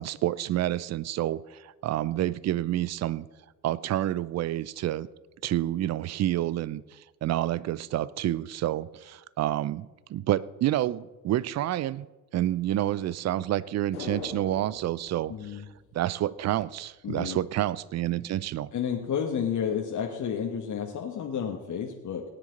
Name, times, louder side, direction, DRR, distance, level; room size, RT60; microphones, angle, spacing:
voice 1, 0.0-3.3 3.6-5.1 5.4-12.1 12.3-15.6 15.9-18.7, right 13 dB, 35° right, 0.6 m, -29 dB
sound 1, 13.9-16.4 16.7-16.8, left 4 dB, 85° left, 2.4 m, -42 dB
voice 2, 15.3-15.6 17.0-17.4 18.7-22.2, left 7 dB, 40° left, 1.5 m, -31 dB
18.5 x 9.9 x 3.9 m
figure-of-eight pair, 50°, 45 cm